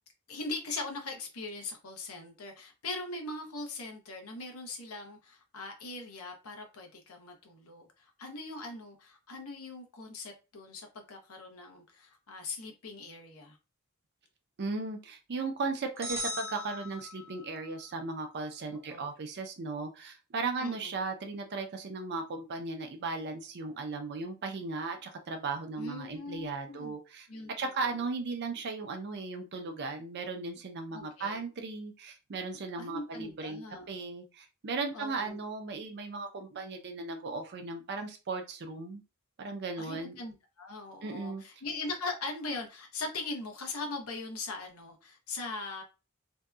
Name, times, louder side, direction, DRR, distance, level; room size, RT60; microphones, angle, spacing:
voice 1, 0.3-13.6 18.7-19.1 20.6-20.9 25.8-27.0 27.3-27.5 28.0-28.1 30.9-31.4 32.8-34.0 34.9-35.4 39.8-45.8, left 3 dB, 75° left, 0.7 m, -40 dB
voice 2, 14.6-27.3 27.6-39.0 39.4-40.2 41.0-41.4, right 3 dB, 50° right, 0.5 m, -36 dB
sound 1, 16.0-17.6, left 1 dB, 15° right, 0.7 m, -38 dB
2.7 x 2.2 x 2.3 m
head